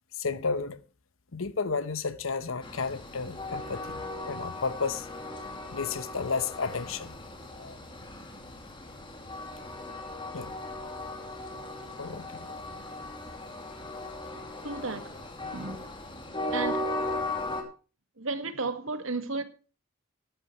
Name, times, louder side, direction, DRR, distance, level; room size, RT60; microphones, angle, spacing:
voice 1, 0.1-0.8 1.3-5.1 5.7-7.2 7.5-7.8 10.3-10.5 12.0-12.5, left 4 dB, 70° left, 1.0 m, -32 dB
Train, 2.6-17.6, left 2 dB, 25° left, 2.5 m, -37 dB
voice 2, 14.6-15.1 15.4-15.9 16.3-16.9 18.2-19.4, right 3 dB, 70° right, 2.0 m, -34 dB
13.5 x 12.5 x 3.1 m
head